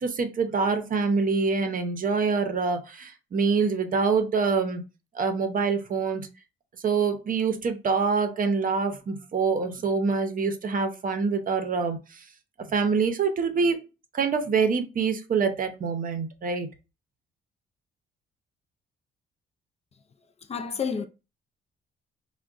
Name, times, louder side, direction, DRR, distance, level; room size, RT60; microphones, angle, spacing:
voice 1, 0.0-4.8 5.1-6.2 6.8-12.2 12.7-13.9 14.1-16.7, right 5 dB, 45° right, 0.7 m, -25 dB
voice 2, 20.5-21.1, left 6 dB, 30° left, 0.4 m, -29 dB
3.5 x 2.2 x 2.4 m
cardioid pair, 90°, 20 cm